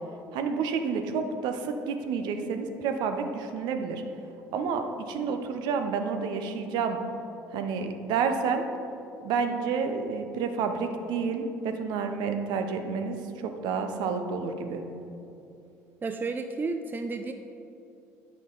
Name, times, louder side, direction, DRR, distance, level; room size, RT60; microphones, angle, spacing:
voice 1, 0.3-4.0 4.5-7.0 7.5-8.7 9.2-14.8, right 5 dB, 65° right, 6 dB, 0.7 m, -29 dB
voice 2, 16.0-17.3, right 3 dB, 25° right, 6 dB, 0.4 m, -32 dB
8.8 x 6.1 x 3.9 m, 2.8 s
hypercardioid pair, 65°, 8 cm